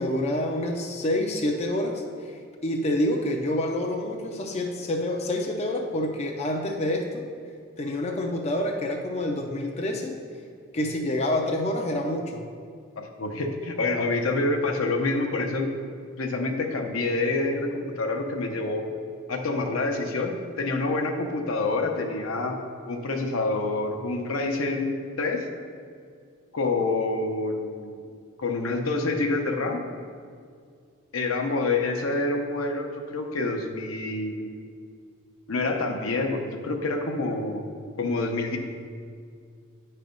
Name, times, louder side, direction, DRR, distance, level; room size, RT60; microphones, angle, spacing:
voice 1, 0.0-7.3 7.8-10.2 10.7-12.5, left 1 dB, 30° left, 1 dB, 0.5 m, -27 dB
voice 2, 13.0-15.7 16.2-18.8 19.3-22.6 22.9-25.5 26.5-28.0 28.4-29.8 31.1-34.6 35.5-37.6 38.0-38.6, left 3 dB, 70° left, 3 dB, 0.8 m, -27 dB
9.4 x 3.3 x 5.2 m, 2.2 s
head